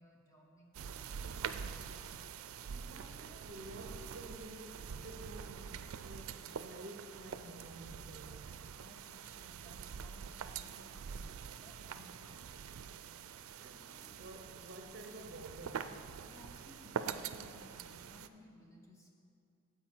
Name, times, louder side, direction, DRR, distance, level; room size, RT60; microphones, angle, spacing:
voice 1, 0.0-1.8 8.7-12.6 16.2-19.1, left 1 dB, 15° left, -1 dB, 0.8 m, -60 dB
sound 1, 0.7-18.3, right 7 dB, 90° right, 0.4 m, -45 dB
voice 2, 2.7-8.5 13.6-16.0, right 1 dB, 50° right, 2 dB, 0.6 m, -51 dB
14.5 x 4.9 x 4.5 m, 2.5 s
head